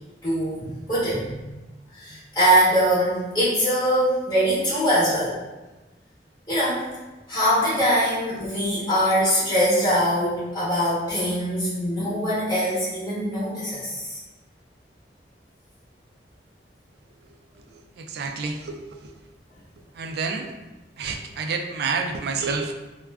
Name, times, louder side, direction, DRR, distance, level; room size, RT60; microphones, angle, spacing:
voice 1, 0.2-1.4 1.9-5.4 6.5-6.8 7.3-14.2, equal, 20° left, -10 dB, 0.7 m, -22 dB
voice 2, 18.0-18.8 19.0-19.1 20.0-20.5 21.0-22.7, right 4 dB, 65° right, 4 dB, 0.3 m, -28 dB
2.3 x 2.2 x 3.3 m, 1.1 s
head